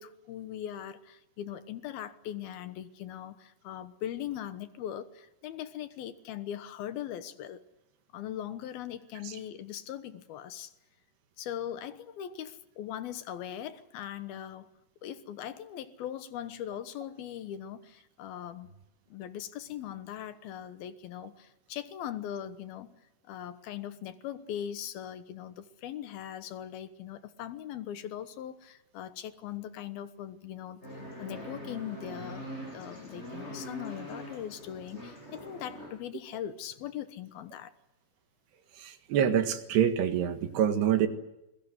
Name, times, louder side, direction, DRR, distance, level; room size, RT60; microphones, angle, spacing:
voice 1, 0.0-7.6 8.1-10.7 11.4-14.7 15.0-18.7 19.1-23.0 23.3-37.7, left 10 dB, 75° left, 11 dB, 2.9 m, -40 dB
sound 1, 30.8-35.9, equal, 15° left, 8.3 m, -43 dB
voice 2, 38.8-41.1, right 9 dB, 85° right, 8 dB, 3.8 m, -26 dB
27.5 x 22.0 x 8.0 m, 0.89 s
omnidirectional pair, 4.6 m